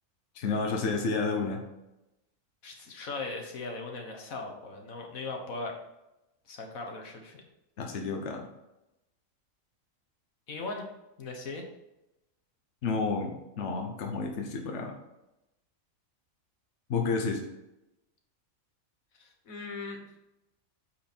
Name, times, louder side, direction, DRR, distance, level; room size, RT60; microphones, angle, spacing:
voice 1, 0.3-1.6 7.8-8.5 12.8-15.0 16.9-17.4, left 4 dB, 60° left, 2 dB, 1.2 m, -30 dB
voice 2, 2.6-5.7 6.5-7.4 10.5-10.9 11.2-11.7 19.2-20.1, left 3 dB, 80° left, 2 dB, 1.7 m, -39 dB
8.7 x 4.9 x 4.4 m, 0.93 s
omnidirectional pair, 1.4 m